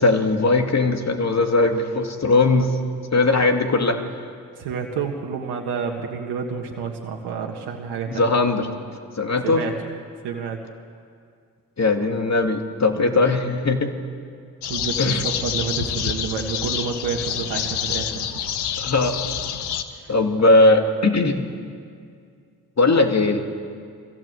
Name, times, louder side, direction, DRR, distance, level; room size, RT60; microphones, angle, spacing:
voice 1, 0.0-2.7 3.1-4.0 8.1-8.7 9.2-9.6 11.8-13.9 15.0-15.2 18.8-19.2 20.1-21.5 22.8-23.4, left 2 dB, 40° left, 5 dB, 2.5 m, -19 dB
voice 2, 4.6-8.3 9.4-9.8 10.2-10.6 12.9-13.2 14.7-18.3 20.0-20.1, right 6 dB, 85° right, 1 dB, 1.6 m, -29 dB
sound 1, 14.6-19.8, left 8 dB, 80° left, 1.2 m, -27 dB
22.5 x 16.0 x 7.9 m, 2.2 s
supercardioid pair, 45°, 39 cm